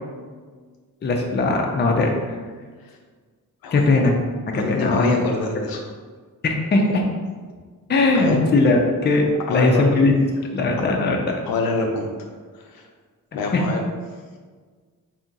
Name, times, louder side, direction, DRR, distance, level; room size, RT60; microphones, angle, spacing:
voice 1, 1.0-2.1 3.7-4.1 4.5-5.1 6.4-7.0 7.9-10.1 10.5-11.2 13.5-13.6, left 3 dB, 30° left, 1 dB, 0.5 m, -19 dB
voice 2, 4.5-5.8 8.1-8.4 9.5-9.8 11.5-12.1 12.5-12.9 13.3-13.8, left 3 dB, 85° left, 2 dB, 0.6 m, -25 dB
2.7 x 2.4 x 4.0 m, 1.5 s
cardioid pair, 95°, 35 cm